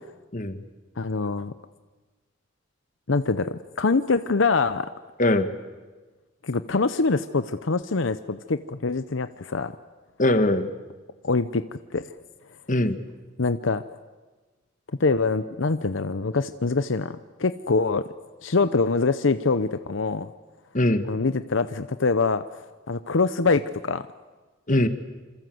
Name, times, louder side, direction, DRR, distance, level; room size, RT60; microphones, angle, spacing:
voice 1, 0.3-0.6 5.2-5.5 10.2-10.7 12.7-13.0 20.7-21.1 24.7-24.9, left 1 dB, 40° left, 9 dB, 1.6 m, -21 dB
voice 2, 1.0-1.5 3.1-4.9 6.4-9.7 11.2-11.6 11.9-12.0 13.4-13.8 15.0-18.1 18.4-20.3 21.1-22.4 22.9-24.1, left 4 dB, 75° left, 12 dB, 0.8 m, -24 dB
27.0 x 26.5 x 7.9 m, 1.3 s
head